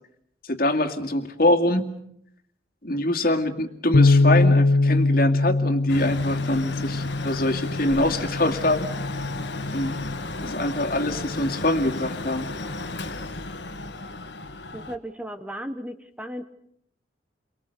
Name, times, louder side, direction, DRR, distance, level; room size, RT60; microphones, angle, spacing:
voice 1, 0.4-1.9 2.8-9.1 9.7-10.0 10.4-12.5, left 1 dB, 50° left, 4 dB, 2.3 m, -24 dB
Bass guitar, 3.9-10.2, left 2 dB, 80° left, 1.0 m, -22 dB
Mechanical fan, 5.9-15.0, left 2 dB, 65° left, 1.8 m, -34 dB
voice 2, 14.7-16.4, equal, 5° right, 8 dB, 1.0 m, -35 dB
30.0 x 24.0 x 6.7 m, 0.72 s
head